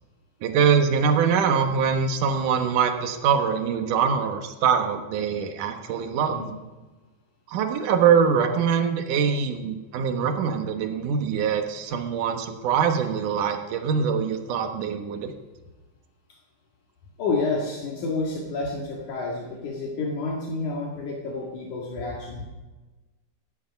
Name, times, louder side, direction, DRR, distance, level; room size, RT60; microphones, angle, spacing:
voice 1, 0.4-6.4 7.5-15.3, right 6 dB, 80° right, 6 dB, 2.8 m, -23 dB
voice 2, 6.3-6.6 17.2-22.5, left 3 dB, 70° left, -2 dB, 3.3 m, -29 dB
15.5 x 13.5 x 5.3 m, 1.2 s
omnidirectional pair, 3.7 m